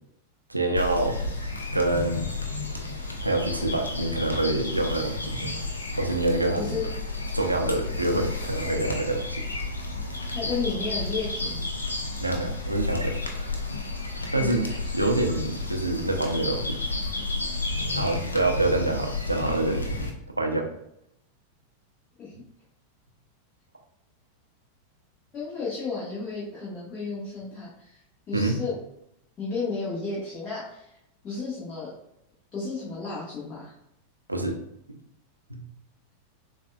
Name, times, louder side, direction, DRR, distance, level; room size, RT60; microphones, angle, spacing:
voice 1, 0.5-1.2 1.7-2.3 3.2-5.4 5.9-6.8 7.3-9.4 12.2-13.2 14.3-14.6 14.9-16.8 17.9-19.9 20.4-20.7 22.3-22.4 28.3-28.6 34.3-34.6 34.9-35.0, right 2 dB, 85° right, 3 dB, 0.5 m, -26 dB
sound 1, 0.7-20.1, left 3 dB, 75° left, 0.6 m, -32 dB
voice 2, 6.5-6.9 10.3-11.7 14.4-14.9 22.2-22.3 25.3-28.0 28.3-28.8 29.4-30.9 31.2-31.9 32.5-33.7, left 4 dB, 30° left, -9 dB, 1.3 m, -33 dB
6.8 x 2.4 x 2.3 m, 0.79 s
figure-of-eight pair, 90°, 0 cm